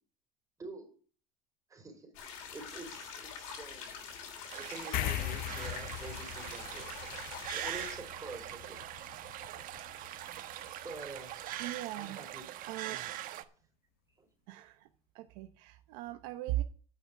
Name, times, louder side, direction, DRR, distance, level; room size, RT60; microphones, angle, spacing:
voice 1, 1.7-4.0 4.5-7.0 7.5-8.9 10.8-11.6 12.0-12.4 12.9-13.1 14.2-14.3, right 3 dB, 20° right, 1 dB, 3.4 m, -47 dB
sound 1, 2.1-8.0, left 6 dB, 90° left, 3.0 m, -45 dB
sound 2, 4.5-13.4, right 13 dB, 55° right, 1.1 m, -42 dB
sound 3, 4.9-11.7, left 15 dB, 55° left, 0.6 m, -42 dB
voice 2, 11.6-12.2 12.7-13.0 14.5-14.9 15.1-16.6, right 15 dB, 75° right, 7 dB, 0.9 m, -38 dB
9.5 x 5.8 x 8.4 m, 0.42 s
supercardioid pair, 125°, 18 cm